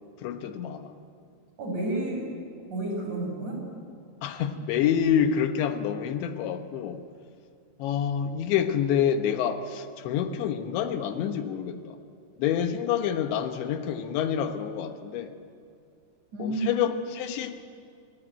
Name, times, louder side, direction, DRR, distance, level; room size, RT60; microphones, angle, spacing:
voice 1, 0.2-0.9 4.2-7.0 7.8-12.0 12.4-15.3 16.4-17.6, left 8 dB, 80° left, 7 dB, 3.4 m, -27 dB
voice 2, 1.6-2.3 2.7-3.6 16.3-16.9, right 2 dB, 40° right, 1 dB, 7.4 m, -31 dB
26.5 x 24.5 x 9.1 m, 2.3 s
omnidirectional pair, 5.2 m